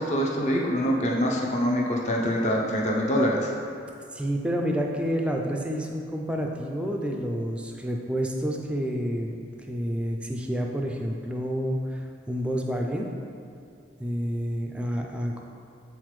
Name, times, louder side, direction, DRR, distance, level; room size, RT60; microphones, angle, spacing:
voice 1, 0.0-3.5, equal, 35° left, -2 dB, 0.7 m, -25 dB
voice 2, 4.1-13.1 14.0-15.4, equal, 5° right, 1 dB, 0.4 m, -29 dB
7.7 x 4.0 x 3.2 m, 2.4 s
head